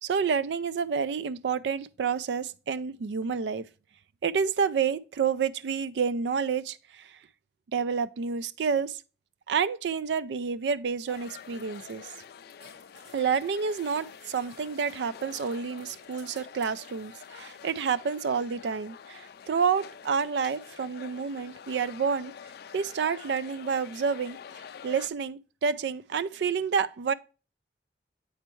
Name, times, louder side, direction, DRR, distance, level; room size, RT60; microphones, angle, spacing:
voice 1, 0.0-3.7 4.2-7.2 7.7-9.0 9.5-12.1 13.1-22.3 22.7-24.4 24.8-27.1, right 6 dB, 75° right, 0.4 m, -29 dB
sound 1, 11.0-17.6, equal, 30° right, 2.5 m, -58 dB
sound 2, 11.1-25.1, left 7 dB, 60° left, 0.3 m, -47 dB
7.9 x 4.4 x 3.0 m
head